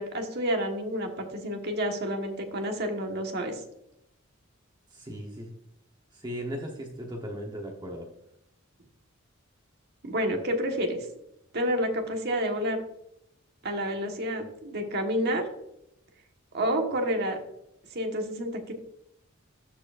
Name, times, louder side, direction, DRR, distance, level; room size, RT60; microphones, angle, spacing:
voice 1, 0.0-3.6 10.0-11.0 11.5-12.8 13.6-15.4 16.5-17.4 17.9-18.7, equal, 50° right, 3 dB, 1.4 m, -29 dB
voice 2, 4.9-5.5 6.1-8.1, equal, 20° right, 0 dB, 1.0 m, -37 dB
14.0 x 4.8 x 2.5 m, 0.80 s
head